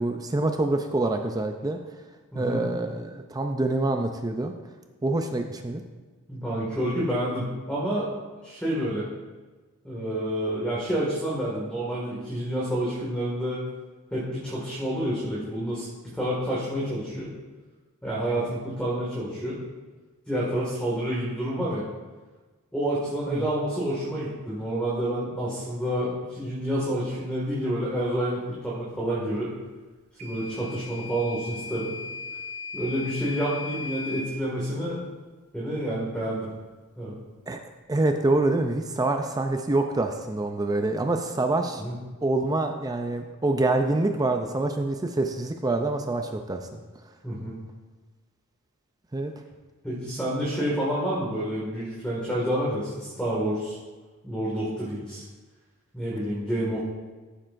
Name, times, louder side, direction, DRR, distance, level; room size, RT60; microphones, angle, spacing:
voice 1, 0.0-1.8 2.3-4.5 5.0-5.8 23.3-23.5 37.5-37.6 37.9-41.8 42.2-46.8 49.1-49.3, right 2 dB, 15° right, 5 dB, 0.4 m, -26 dB
voice 2, 2.3-2.7 6.3-8.1 8.4-9.1 9.8-13.6 14.1-17.3 18.0-19.6 20.3-21.8 22.7-29.5 30.2-31.9 32.7-35.0 35.5-36.5 37.0-37.1 41.7-41.9 47.2-47.6 49.8-53.8 54.2-55.2 55.9-56.8, right 1 dB, 5° left, -7 dB, 1.9 m, -29 dB
Microwave oven / Alarm, 30.2-34.3, left 3 dB, 90° right, 1.2 m, -37 dB
14.5 x 7.5 x 2.6 m, 1.3 s
head